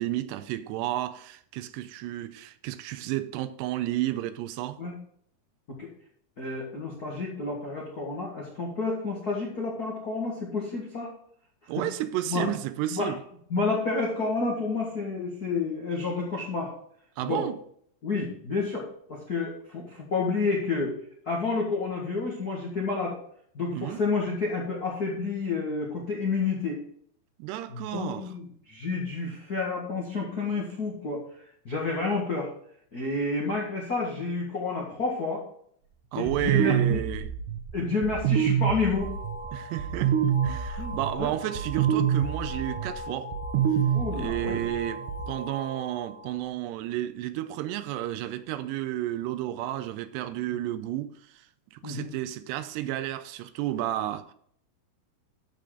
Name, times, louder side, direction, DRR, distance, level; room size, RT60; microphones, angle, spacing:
voice 1, 0.0-4.8 11.7-13.2 17.2-17.6 23.7-24.0 27.4-28.3 36.1-37.3 39.5-40.2 40.4-43.3 44.1-51.4 51.8-54.3, right 13 dB, 90° right, 2.8 m, -32 dB
voice 2, 6.4-11.1 12.2-12.4 12.9-13.1 13.5-16.7 17.2-17.5 18.0-20.9 21.2-23.1 23.5-26.8 27.7-31.2 31.6-32.5 32.9-35.4 36.1-37.0 37.7-39.1 40.8-41.3 43.9-44.6 51.8-52.1, left 3 dB, 75° left, 0.8 m, -30 dB
sound 1, 36.3-45.3, right 8 dB, 75° right, 1.9 m, -27 dB
sound 2, 38.9-46.5, equal, 55° left, 1.2 m, -40 dB
13.0 x 5.2 x 3.8 m
omnidirectional pair, 4.8 m